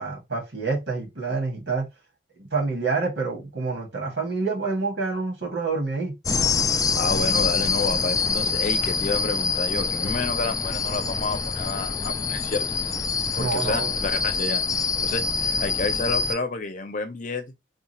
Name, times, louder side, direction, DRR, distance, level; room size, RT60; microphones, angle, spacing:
voice 1, 0.0-1.9 2.4-6.2 13.4-14.0, right 4 dB, 80° right, 1.8 m, -27 dB
sound 1, 6.3-16.4, left 5 dB, 20° left, 0.4 m, -25 dB
voice 2, 6.9-12.7 13.3-17.5, left 3 dB, 45° left, 0.7 m, -30 dB
3.6 x 2.4 x 4.2 m
head